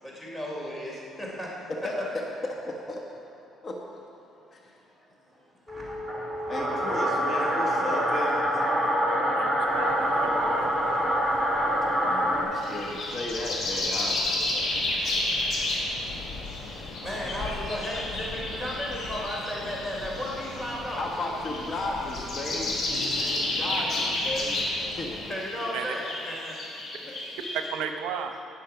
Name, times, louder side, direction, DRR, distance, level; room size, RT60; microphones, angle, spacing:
voice 1, 0.0-1.6 5.3-5.4 17.0-21.0 23.7-23.8 25.3-26.5, equal, 10° left, -3 dB, 3.3 m, -34 dB
voice 2, 1.7-3.2 3.6-4.0 4.5-4.6 6.5-8.5 12.0-15.2 16.8-16.9 21.0-24.6 25.0-25.1 27.0-27.2, left 1 dB, 35° left, 0 dB, 1.2 m, -35 dB
sound 1, 5.7-12.4, equal, 5° right, 2.6 m, -26 dB
voice 3, 9.3-10.7 25.7-25.9 27.7-28.3, right 7 dB, 85° right, 6 dB, 0.8 m, -34 dB
sound 2, 9.6-25.3, left 2 dB, 70° left, 2.0 m, -42 dB
sound 3, 12.5-27.7, left 2 dB, 55° left, 3.4 m, -31 dB
18.5 x 6.4 x 5.8 m, 2.6 s
cardioid pair, 130°, 0 cm